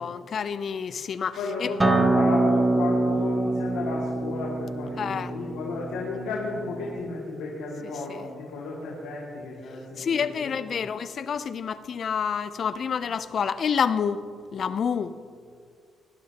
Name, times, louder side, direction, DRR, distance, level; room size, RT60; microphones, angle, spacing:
voice 1, 0.0-1.7 5.0-5.3 8.1-8.3 10.0-14.2 14.5-15.1, left 7 dB, 55° left, 0.5 m, -28 dB
voice 2, 1.4-10.1 10.4-10.5, left 3 dB, 90° left, 2.2 m, -33 dB
Acoustic guitar, 1.8-7.0, right 2 dB, 15° right, 0.9 m, -25 dB
18.5 x 11.5 x 2.9 m
cardioid pair, 90°, 0 cm